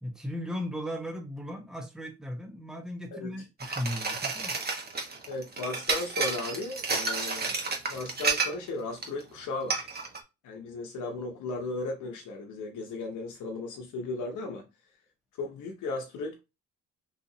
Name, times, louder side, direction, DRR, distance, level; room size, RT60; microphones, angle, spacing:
voice 1, 0.0-4.6, equal, ahead, 1.0 m, -36 dB
sound 1, 3.6-8.7 9.0-9.2 9.7-10.2, right 4 dB, 30° right, 1.2 m, -31 dB
voice 2, 5.3-9.9 10.4-14.6 15.3-16.4, left 2 dB, 80° left, 0.9 m, -36 dB
3.9 x 2.8 x 2.7 m
cardioid pair, 90°, 30 cm